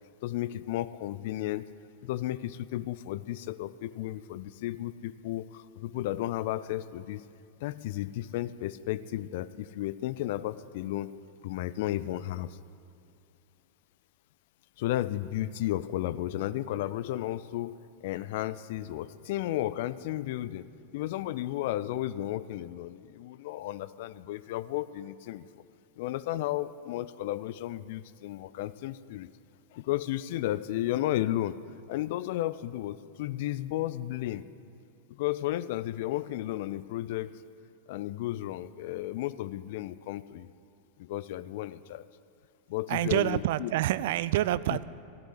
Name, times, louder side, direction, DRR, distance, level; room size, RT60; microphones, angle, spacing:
voice 1, 0.2-1.7 2.0-7.2 7.6-11.1 11.4-12.6 14.8-20.7 20.9-25.6 26.0-29.3 29.7-31.6 31.9-34.4 35.1-37.4 37.9-40.5 41.0-42.1 42.7-43.7, left 14 dB, 50° left, 0.3 m, -33 dB
voice 2, 42.9-44.8, right 14 dB, 55° right, 0.3 m, -27 dB
13.5 x 8.3 x 8.1 m
figure-of-eight pair, 90°, 0 cm